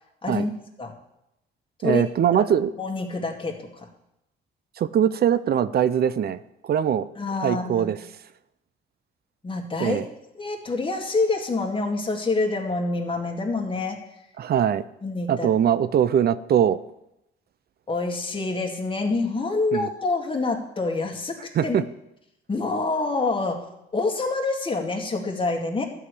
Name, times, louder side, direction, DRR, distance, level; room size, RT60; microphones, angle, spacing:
voice 1, 0.2-0.5 0.8-0.9 1.8-2.0 2.8-3.9 7.2-7.9 9.4-10.0 10.4-14.0 15.0-15.5 17.9-21.8 22.5-23.7 23.9-25.8, left 3 dB, 25° left, 1 dB, 2.1 m, -26 dB
voice 2, 1.8-2.7 4.8-6.4 6.6-7.1 7.4-8.0 9.8-10.0 14.4-14.8 15.3-16.8 19.7-19.9 21.6-21.8, right 9 dB, 50° right, 15 dB, 0.5 m, -21 dB
12.5 x 4.9 x 8.3 m, 0.87 s
cardioid pair, 90°, 20 cm